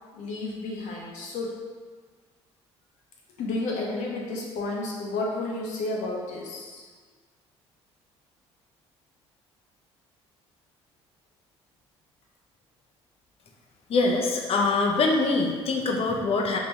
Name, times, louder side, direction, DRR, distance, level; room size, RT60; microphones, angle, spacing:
voice 1, 0.1-1.5 3.4-6.8, left 2 dB, 60° left, -2 dB, 0.9 m, -31 dB
voice 2, 13.9-16.6, left 3 dB, 45° left, 1 dB, 0.6 m, -24 dB
3.7 x 3.0 x 2.9 m, 1.5 s
hypercardioid pair, 55°, 14 cm